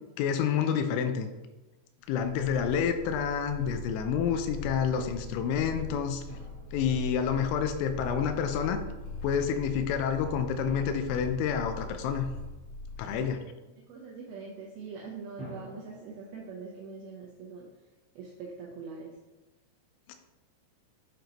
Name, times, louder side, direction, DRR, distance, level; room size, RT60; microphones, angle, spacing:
voice 1, 0.2-1.3 2.1-6.2 6.7-8.8 9.2-12.3 13.0-13.4 20.1-20.2, left 7 dB, 90° left, 7 dB, 3.0 m, -28 dB
Purr, 2.2-13.4, left 3 dB, 60° left, 3.2 m, -41 dB
Drum, 6.3-7.8 10.6-12.4 15.4-17.0, equal, 40° left, 2.0 m, -49 dB
voice 2, 13.1-13.4 13.9-17.7 18.2-19.2, right 4 dB, 90° right, -3 dB, 2.1 m, -43 dB
7.6 x 5.1 x 2.9 m, 1.1 s
omnidirectional pair, 5.4 m